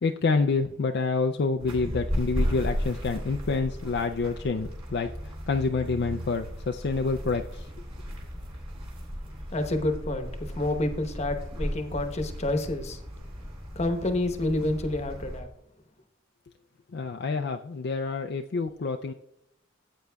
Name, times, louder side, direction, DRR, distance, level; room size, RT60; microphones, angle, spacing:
voice 1, 0.0-7.7 16.9-19.1, left 4 dB, 55° left, 4 dB, 0.4 m, -28 dB
sound 1, 1.6-15.4, equal, 30° right, 2.8 m, -35 dB
voice 2, 9.5-13.0 13.7-15.5, left 2 dB, 35° left, 7 dB, 1.0 m, -29 dB
14.0 x 8.4 x 2.3 m, 0.77 s
head